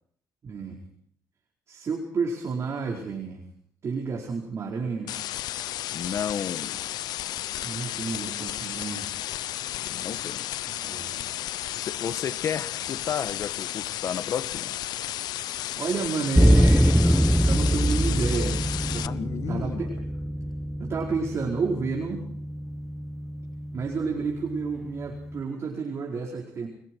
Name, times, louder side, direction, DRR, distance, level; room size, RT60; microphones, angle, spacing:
voice 1, 0.4-0.8 1.7-3.4 3.8-5.1 7.6-9.1 10.6-11.3 15.8-19.1 19.5-20.1 20.8-22.2 23.7-26.7, right 5 dB, 40° right, 4.8 m, -31 dB
sound 1, 5.1-19.1, left 13 dB, 80° left, 0.8 m, -33 dB
voice 2, 5.9-6.8 9.9-10.5 11.8-14.7 19.0-19.9, left 8 dB, 50° left, 1.5 m, -32 dB
sound 2, 16.3-25.4, equal, ahead, 1.0 m, -24 dB
29.5 x 21.5 x 4.7 m
cardioid pair, 125°, 7 cm